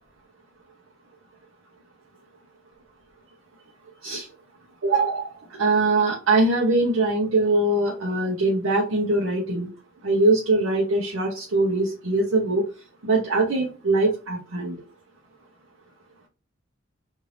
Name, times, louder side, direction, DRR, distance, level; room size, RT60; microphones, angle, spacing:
voice 1, 4.8-9.7 10.0-12.6 13.0-14.8, right 2 dB, 80° right, -3 dB, 0.8 m, -22 dB
3.2 x 2.7 x 2.6 m, 0.33 s
head